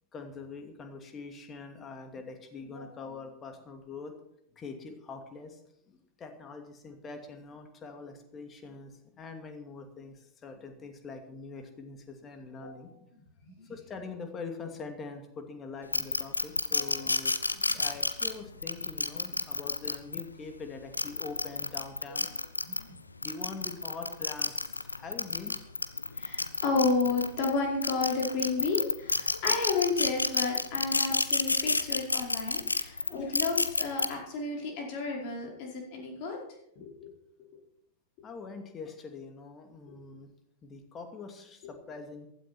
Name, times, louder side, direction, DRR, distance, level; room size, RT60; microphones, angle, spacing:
voice 1, 0.1-4.2 4.6-5.6 5.9-10.2 10.4-12.9 13.7-17.3 17.7-22.3 23.2-25.5 30.9-31.0 32.8-33.4 38.2-40.3 40.6-42.3, left 4 dB, 25° left, 5 dB, 2.5 m, -44 dB
sound 1, 15.9-20.2 20.8-22.8 23.2-27.5 27.8-34.1, left 3 dB, 80° left, 0.9 m, -29 dB
voice 2, 16.7-17.1 17.6-17.7 22.1-22.3 22.6-22.9 26.1-36.4 36.8-36.9 39.9-40.0, left 4 dB, 45° left, -1 dB, 5.2 m, -32 dB
15.5 x 12.5 x 4.5 m, 0.74 s
figure-of-eight pair, 90°, 0 cm